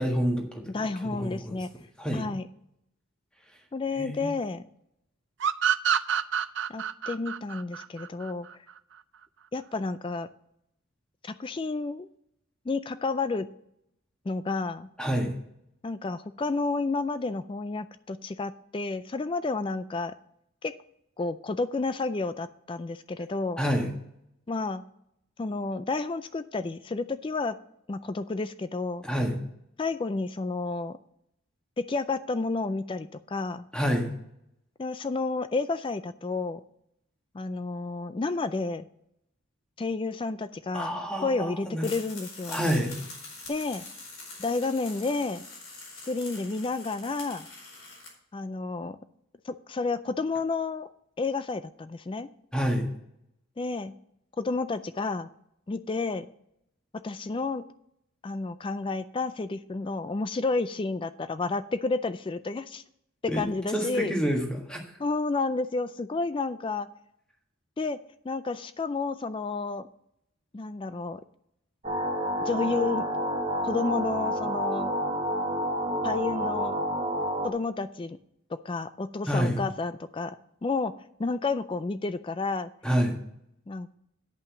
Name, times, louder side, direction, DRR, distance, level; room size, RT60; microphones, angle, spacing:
voice 1, 0.0-0.7 1.1-1.6 2.0-2.2 4.0-4.3 15.0-15.3 23.6-23.9 29.0-29.4 33.7-34.2 40.7-41.9 42.5-42.9 52.5-52.8 63.3-63.4 63.7-64.8 79.3-79.6 82.8-83.2, equal, 5° left, 1 dB, 1.5 m, -27 dB
voice 2, 0.7-1.7 2.1-2.5 3.7-4.6 6.7-8.5 9.5-10.3 11.2-12.1 12.7-13.5 14.3-14.9 15.8-20.1 20.6-20.7 21.2-23.6 24.5-24.8 25.4-27.6 27.9-29.0 29.8-31.0 31.8-33.7 34.8-36.6 37.3-38.9 39.8-42.7 43.5-43.9 44.4-45.4 46.1-47.5 48.3-49.0 49.5-50.9 51.2-52.3 53.6-53.9 54.4-55.3 55.7-56.3 57.0-57.6 58.2-62.8 63.3-64.2 65.0-66.9 67.8-68.0 68.2-69.9 70.5-71.2 72.5-73.1 73.6-74.9 76.0-76.8 77.4-78.2 78.6-80.4 80.6-82.7 83.7-83.9, left 3 dB, 25° left, 13 dB, 0.3 m, -31 dB
sound 1, 5.4-8.8, right 8 dB, 60° right, 0.4 m, -27 dB
sound 2, 41.8-48.1, left 3 dB, 70° left, 4.7 m, -43 dB
sound 3, 71.8-77.5, equal, 30° right, 1.2 m, -29 dB
9.2 x 5.6 x 7.0 m, 0.75 s
head